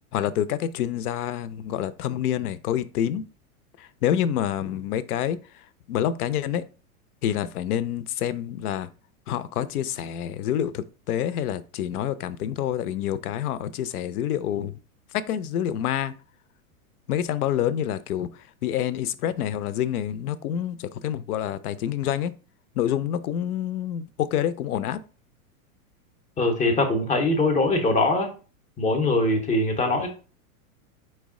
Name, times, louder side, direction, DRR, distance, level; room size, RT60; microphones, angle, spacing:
voice 1, 0.1-3.3 3.8-5.4 5.9-6.6 7.2-8.9 9.3-14.8 15.3-16.1 17.1-18.3 18.6-22.3 22.8-25.0, left 10 dB, 80° left, 0.5 m, -27 dB
voice 2, 26.4-28.3 28.8-30.1, left 2 dB, 15° left, 0.5 m, -22 dB
4.5 x 2.1 x 3.5 m
hypercardioid pair, 120°, 44 cm